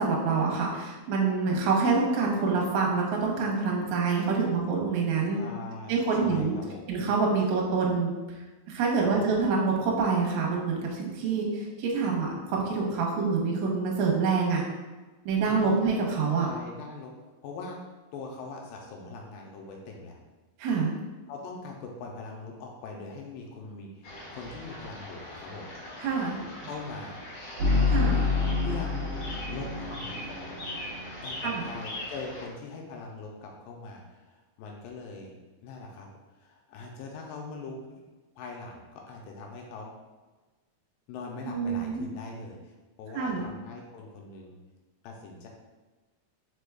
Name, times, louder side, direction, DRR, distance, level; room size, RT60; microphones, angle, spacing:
voice 1, 0.0-5.4 5.9-6.6 6.9-8.1 8.7-14.6 15.3-16.5 20.6-20.9 26.0-26.4 27.9-28.2 31.4-31.7 41.5-42.1 43.1-43.5, right 4 dB, 70° right, -2 dB, 1.8 m, -26 dB
voice 2, 5.4-6.9 9.0-9.3 15.4-15.8 16.4-17.1 17.4-17.8 18.1-20.2 21.3-25.7 26.7-27.3 27.9-29.1 29.5-30.8 31.2-35.3 35.6-36.1 36.4-38.0 38.4-39.9 41.1-42.7 43.0-44.6 45.0-45.5, left 3 dB, 80° left, 0 dB, 2.2 m, -42 dB
sound 1, 24.0-32.5, left 1 dB, 60° left, 1.5 m, -41 dB
sound 2, 27.6-31.7, left 4 dB, 90° right, 1.3 m, -28 dB
4.9 x 4.4 x 2.3 m, 1.2 s
omnidirectional pair, 4.2 m